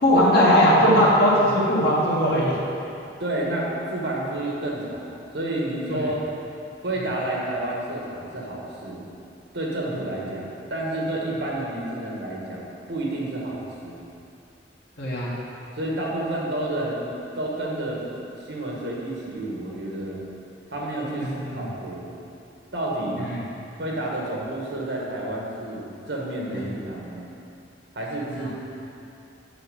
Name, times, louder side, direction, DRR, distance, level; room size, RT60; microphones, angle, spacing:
voice 1, 0.0-2.6 5.9-6.0 15.0-15.3 21.2-21.6 23.2-23.4 28.4-28.5, equal, 60° left, -6 dB, 1.5 m, -19 dB
voice 2, 3.2-6.2 6.8-9.0 9.5-14.0 15.7-17.1 17.3-18.0 18.4-20.2 20.7-22.1 22.7-23.2 23.8-27.3 27.9-28.5, right 1 dB, 90° right, -3 dB, 1.6 m, -30 dB
7.0 x 5.7 x 5.6 m, 2.7 s
head